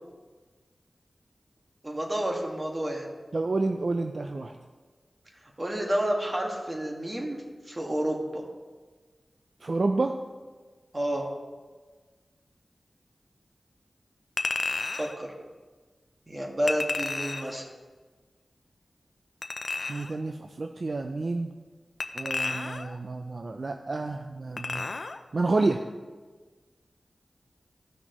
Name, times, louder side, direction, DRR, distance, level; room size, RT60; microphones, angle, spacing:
voice 1, 1.8-3.1 5.6-7.4 7.7-8.4 10.9-11.3 14.9-15.3 16.3-17.7, right 1 dB, 30° right, 0 dB, 1.7 m, -30 dB
voice 2, 3.3-4.5 9.6-10.2 19.9-21.5 22.1-24.9 25.3-25.8, right 3 dB, 60° right, 6 dB, 0.4 m, -29 dB
Chink clink, 14.4-15.1 16.7-17.6 19.4-20.2 22.0-23.0 24.6-25.2 25.6-25.7, left 3 dB, 65° left, 0.5 m, -32 dB
15.0 x 6.1 x 3.0 m, 1.4 s
wide cardioid pair, 60°, 0 cm